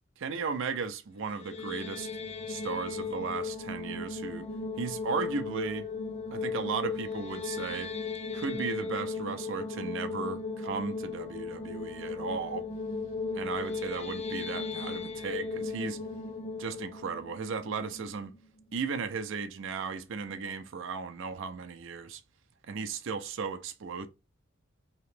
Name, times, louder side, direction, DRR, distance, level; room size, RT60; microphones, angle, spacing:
voice 1, 0.2-2.1 2.5-4.5 4.8-5.9 6.3-7.9 8.3-12.6 13.3-16.0 16.6-18.3 18.7-22.2 22.7-24.1, right 5 dB, 65° right, 0.5 m, -35 dB
sound 1, 1.2-18.4, left 4 dB, 30° left, 0.4 m, -36 dB
2.9 x 2.8 x 3.3 m
head